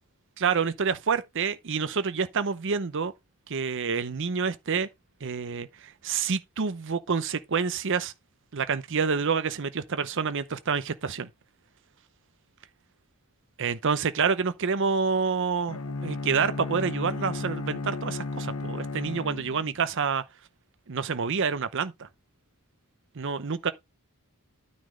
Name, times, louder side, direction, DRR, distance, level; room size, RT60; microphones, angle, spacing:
voice 1, 0.4-3.1 3.5-4.9 5.2-8.1 8.5-11.3 13.6-20.2 20.9-22.1 23.2-23.7, right 5 dB, 60° right, 0.7 m, -28 dB
Bowed string instrument, 15.7-19.9, left 3 dB, 75° left, 0.9 m, -34 dB
9.5 x 4.2 x 4.8 m
head